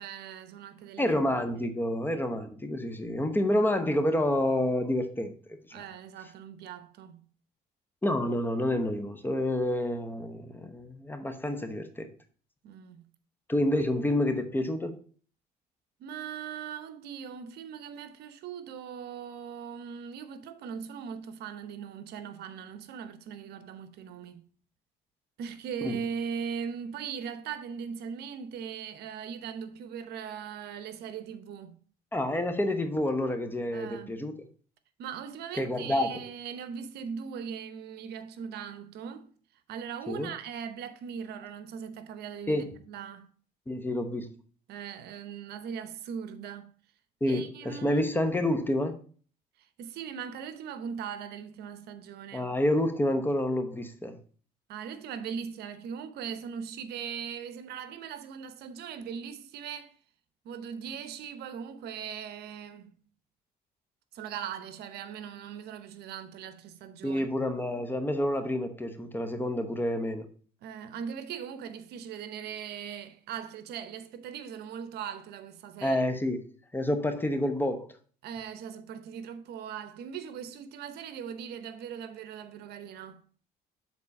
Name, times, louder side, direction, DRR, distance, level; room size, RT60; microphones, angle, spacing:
voice 1, 0.0-1.2 1.6-1.7 5.7-7.3 12.6-13.1 16.0-24.5 25.4-31.8 33.7-34.2 35.0-39.3 39.7-43.3 44.7-46.7 47.3-48.0 48.3-48.4 49.6-52.5 54.7-60.0 60.4-62.9 64.1-67.2 70.6-76.0 78.2-83.3, right 7 dB, 75° right, 0.8 m, -40 dB
voice 2, 1.0-5.3 5.7-5.8 8.0-12.1 13.5-15.0 25.8-26.0 32.1-34.4 35.6-36.2 40.1-40.3 42.5-42.7 43.7-44.3 47.2-49.0 52.3-54.2 67.0-70.3 75.8-76.4 76.7-77.9, left 1 dB, 10° left, 1.0 m, -28 dB
7.2 x 4.1 x 5.3 m
cardioid pair, 110°, 17 cm